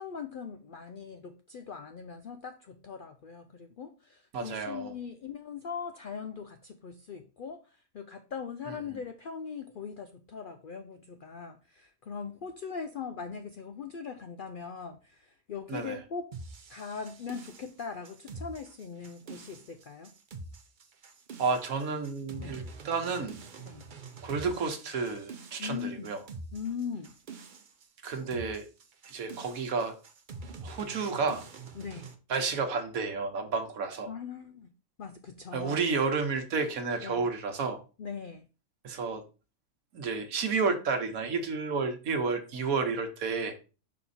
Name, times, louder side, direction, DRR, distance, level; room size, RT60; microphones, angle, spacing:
voice 1, 0.0-16.3 16.7-20.1 22.3-22.6 23.6-23.8 25.6-26.1 26.5-27.1 31.7-32.1 34.1-34.7 35.0-35.8 37.0-37.3 38.0-38.5, left 6 dB, 70° left, 0.5 m, -40 dB
voice 2, 4.3-4.9 8.7-8.8 15.7-16.0 21.4-23.4 24.2-26.2 28.0-28.7 29.1-29.9 30.6-31.4 32.3-34.1 35.5-37.8 38.8-39.2 39.9-43.5, right 4 dB, 85° right, 1.4 m, -31 dB
sound 1, 16.3-32.2, right 3 dB, 45° right, 0.7 m, -46 dB
5.7 x 4.2 x 4.1 m
omnidirectional pair, 1.4 m